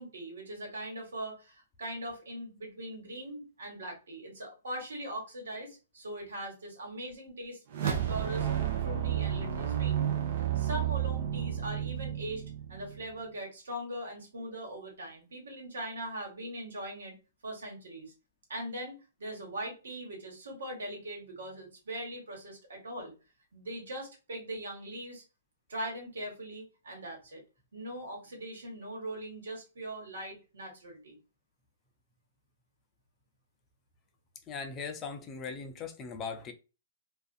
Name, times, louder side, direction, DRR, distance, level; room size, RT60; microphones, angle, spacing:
voice 1, 0.0-8.5 8.8-10.0 10.5-17.1 17.4-18.1 18.5-23.1 23.5-25.2 25.7-27.4 27.7-31.2, right 1 dB, 80° right, 1.4 m, -41 dB
sound 1, 7.7-13.1, right 10 dB, 55° right, 0.7 m, -31 dB
voice 2, 34.5-36.5, left 5 dB, 25° left, 0.5 m, -39 dB
2.4 x 2.4 x 2.5 m
hypercardioid pair, 130°, 0 cm